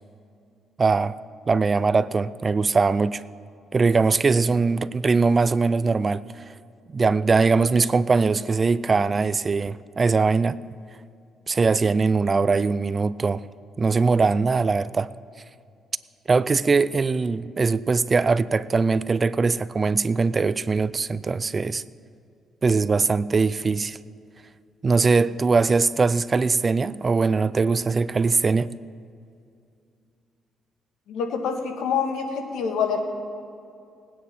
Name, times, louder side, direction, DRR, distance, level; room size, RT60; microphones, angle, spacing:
voice 1, 0.8-1.1 1.5-3.2 3.7-6.5 6.9-10.6 11.5-13.4 13.8-15.1 16.3-21.8 22.6-24.0 24.8-28.7, right 4 dB, 35° right, 0.3 m, -21 dB
voice 2, 31.1-33.0, left 6 dB, 85° left, 1.6 m, -26 dB
19.5 x 9.3 x 4.4 m
cardioid pair, 90°, 0 cm